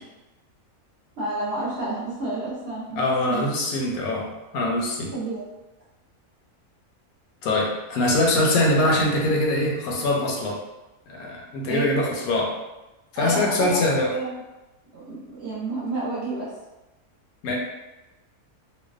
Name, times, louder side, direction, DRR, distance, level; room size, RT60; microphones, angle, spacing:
voice 1, 1.2-3.5 5.1-5.4 11.7-11.9 13.1-13.8 14.1-14.3 14.9-16.5, right 2 dB, 60° right, -8 dB, 0.7 m, -30 dB
voice 2, 3.0-4.3 4.5-5.1 7.4-10.6 11.1-12.5 13.1-14.1 17.4-17.6, left 1 dB, 75° left, -1 dB, 1.0 m, -23 dB
2.6 x 2.1 x 2.3 m, 1.0 s
omnidirectional pair, 1.6 m